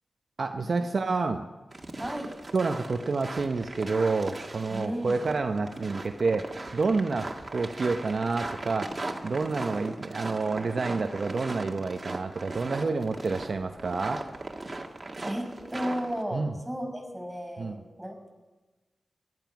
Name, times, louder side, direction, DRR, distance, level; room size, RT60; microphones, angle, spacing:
voice 1, 0.4-1.4 2.5-14.2 16.3-16.5 17.6-17.8, right 4 dB, 65° right, 5 dB, 0.8 m, -29 dB
sound 1, 1.7-16.2, right 2 dB, 40° right, 1.8 m, -39 dB
voice 2, 2.0-2.3 4.7-5.2 15.2-18.3, equal, 10° right, 3 dB, 6.1 m, -34 dB
17.0 x 12.5 x 6.0 m, 1.2 s
cardioid pair, 40°, 0 cm